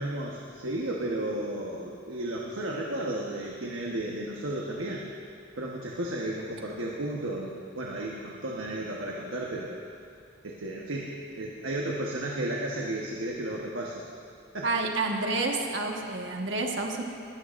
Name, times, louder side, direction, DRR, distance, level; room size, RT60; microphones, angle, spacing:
voice 1, 0.0-5.1 5.6-9.8 10.4-14.1 14.5-14.7, right 1 dB, 90° right, -2 dB, 1.2 m, -33 dB
voice 2, 14.6-17.0, right 3 dB, 65° right, 1 dB, 1.5 m, -29 dB
21.5 x 13.5 x 2.6 m, 2.5 s
head